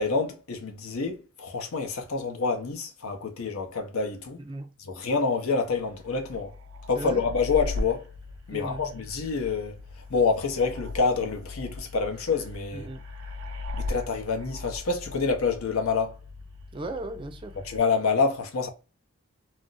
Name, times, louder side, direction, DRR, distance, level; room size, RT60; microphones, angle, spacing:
voice 1, 0.0-4.4 4.9-6.5 6.9-8.0 8.5-9.8 10.1-12.9 13.7-16.2 17.6-18.7, left 4 dB, 80° left, 0.7 m, -27 dB
voice 2, 4.4-4.7 7.0-7.2 8.5-8.9 12.7-13.0 16.7-17.6, right 2 dB, 25° right, 0.4 m, -36 dB
sound 1, 5.6-17.8, left 2 dB, 80° right, 0.5 m, -39 dB
2.4 x 2.0 x 3.8 m
head